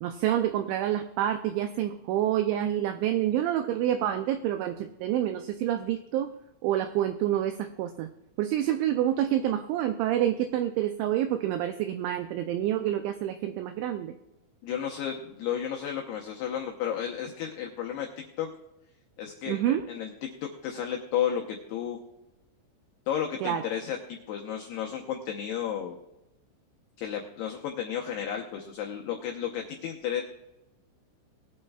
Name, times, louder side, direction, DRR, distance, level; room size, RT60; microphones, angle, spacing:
voice 1, 0.0-6.3 6.6-8.1 8.4-14.1 19.5-19.9 23.4-23.6, right 11 dB, 85° right, 8 dB, 2.6 m, -28 dB
voice 2, 14.6-18.5 19.2-19.6 19.9-22.0 23.1-26.0 27.0-30.2, left 9 dB, 85° left, 1 dB, 2.3 m, -33 dB
21.0 x 8.7 x 2.4 m, 0.96 s
omnidirectional pair, 5.9 m